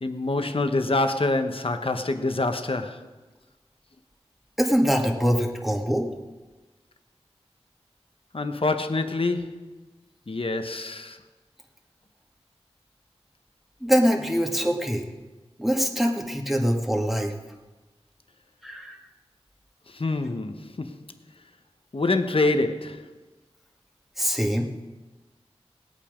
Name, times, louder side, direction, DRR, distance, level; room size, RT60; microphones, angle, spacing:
voice 1, 0.0-3.0 8.3-9.8 10.3-11.2 19.9-21.0 21.9-23.0, left 2 dB, 55° left, 1.1 m, -26 dB
voice 2, 4.6-6.1 13.8-15.1 15.6-17.4 18.6-19.0 24.2-24.7, equal, ahead, 2.1 m, -23 dB
19.0 x 8.9 x 5.2 m
wide cardioid pair, 45°, 11 cm